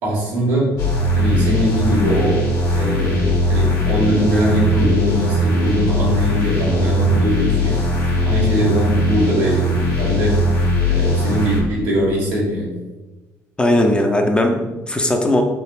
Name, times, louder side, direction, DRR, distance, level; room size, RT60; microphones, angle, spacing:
voice 1, 0.0-0.7 1.1-2.4 2.7-7.9 8.2-10.5 10.8-12.7, equal, 85° right, -4 dB, 1.0 m, -21 dB
sound 1, 0.8-11.6, left 1 dB, 65° left, 1.0 m, -19 dB
voice 2, 13.6-15.4, left 1 dB, 15° left, 3 dB, 0.4 m, -18 dB
3.3 x 2.4 x 2.2 m, 1.1 s
supercardioid pair, 70°, 7 cm